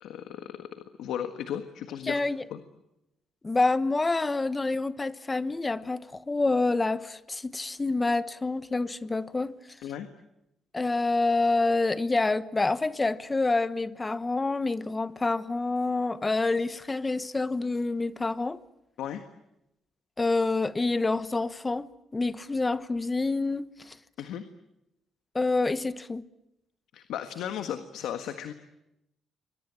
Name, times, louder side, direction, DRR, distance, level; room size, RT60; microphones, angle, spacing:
voice 1, 0.0-2.2 2.5-2.6 9.8-10.1 19.0-19.2 24.2-24.4 26.9-28.5, left 10 dB, 80° left, 1.6 m, -35 dB
voice 2, 2.0-2.5 3.4-9.5 10.7-18.6 20.2-21.9 22.1-23.9 25.3-26.2, left 3 dB, 20° left, 1.1 m, -27 dB
27.0 x 23.0 x 8.8 m
cardioid pair, 85°, 0 cm